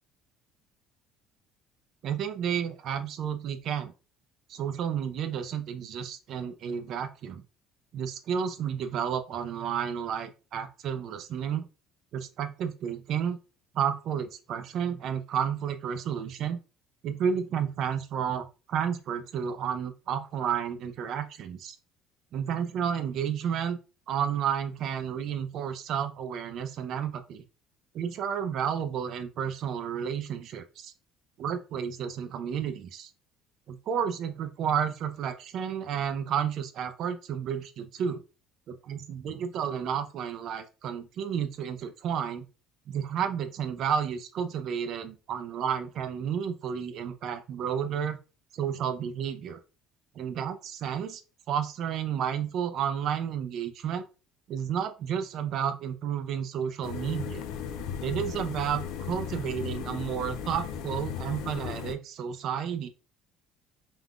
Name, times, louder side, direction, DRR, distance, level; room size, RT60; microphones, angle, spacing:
voice 1, 2.0-3.9 4.5-7.4 7.9-11.7 12.1-13.4 13.7-16.6 17.0-21.8 22.3-23.8 24.1-27.4 27.9-30.9 31.4-33.1 33.7-38.2 38.7-42.5 42.9-48.2 48.5-49.6 50.1-51.2 51.5-54.0 54.5-57.5 58.0-62.9, right 8 dB, 55° right, 9 dB, 0.5 m, -31 dB
sound 1, 56.8-61.9, left 8 dB, 75° left, 0.4 m, -36 dB
3.6 x 2.5 x 2.3 m, 0.32 s
cardioid pair, 120°, 0 cm